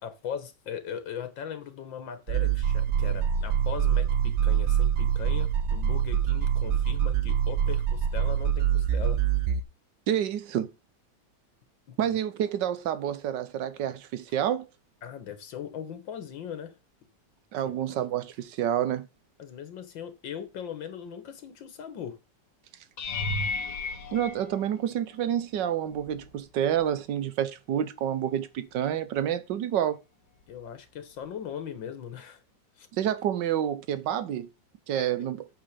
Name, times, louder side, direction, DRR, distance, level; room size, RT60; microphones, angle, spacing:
voice 1, 0.0-9.2 11.9-12.2 15.0-16.7 17.6-18.1 19.4-22.2 30.5-32.4 32.8-32.9, left 8 dB, 90° left, 2.0 m, -39 dB
sound 1, 2.3-9.6, right 9 dB, 55° right, 0.8 m, -25 dB
voice 2, 10.1-10.7 12.0-14.7 17.5-19.1 24.1-30.0 32.9-34.5 34.9-35.5, right 10 dB, 75° right, 1.5 m, -28 dB
sound 2, 23.0-25.3 25.9-26.4 26.8-26.9 31.3-31.4, left 3 dB, 65° left, 1.8 m, -34 dB
8.8 x 4.3 x 6.7 m
omnidirectional pair, 2.0 m